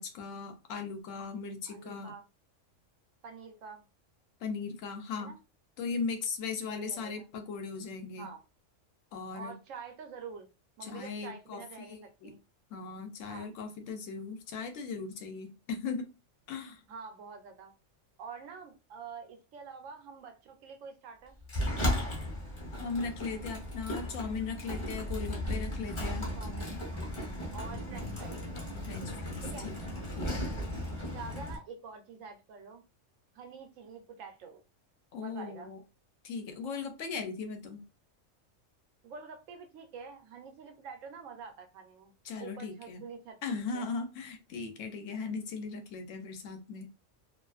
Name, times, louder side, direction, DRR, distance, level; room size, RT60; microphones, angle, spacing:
voice 1, 0.0-2.1 4.4-5.3 5.8-8.3 9.1-9.5 10.8-12.3 12.7-16.1 16.5-16.8 22.8-26.3 28.8-29.7 30.2-30.6 35.1-35.8 36.2-37.8 42.2-43.0 43.4-46.9, left 5 dB, 85° left, 1.0 m, -38 dB
voice 2, 1.7-2.2 3.2-3.8 5.2-5.4 6.7-7.2 8.2-8.4 9.3-10.5 10.8-12.4 13.3-13.5 16.9-17.7 18.2-21.4 26.3-26.8 27.5-28.4 29.5-29.7 31.1-32.8 33.3-34.6 35.2-35.7 39.0-42.1 42.4-43.9, right 5 dB, 85° right, 1.0 m, -47 dB
Sliding door, 21.5-31.6, left 1 dB, 30° left, 0.7 m, -36 dB
2.5 x 2.4 x 2.3 m
omnidirectional pair, 1.3 m